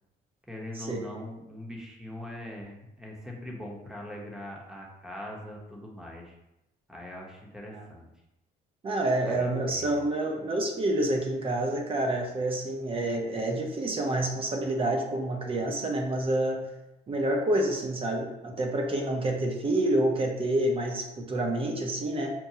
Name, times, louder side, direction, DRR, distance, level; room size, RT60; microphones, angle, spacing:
voice 1, 0.5-6.3 6.9-8.1 9.3-10.0, left 1 dB, 5° right, -2 dB, 0.8 m, -42 dB
voice 2, 8.8-16.6 17.1-22.3, right 1 dB, 35° right, 2 dB, 0.7 m, -28 dB
5.9 x 2.2 x 2.8 m, 0.92 s
cardioid pair, 110°, 17 cm